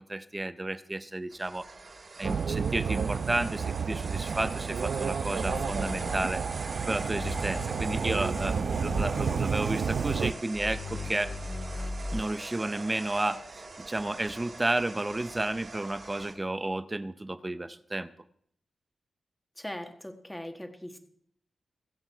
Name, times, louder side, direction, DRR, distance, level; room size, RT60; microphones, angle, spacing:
voice 1, 0.0-1.7 2.2-6.4 6.8-11.3 12.1-18.1, right 2 dB, 15° right, 13 dB, 0.7 m, -32 dB
sound 1, 1.3-16.3, right 3 dB, 45° right, 2.6 m, -43 dB
sound 2, 2.2-10.3, right 6 dB, 65° right, 0.6 m, -31 dB
sound 3, 5.4-6.8 7.1-10.0 10.5-12.2, left 2 dB, 35° left, 1.7 m, -38 dB
voice 2, 19.6-21.0, left 1 dB, 5° left, 6 dB, 1.4 m, -40 dB
23.5 x 8.1 x 4.5 m, 0.68 s
wide cardioid pair, 155°, 0 cm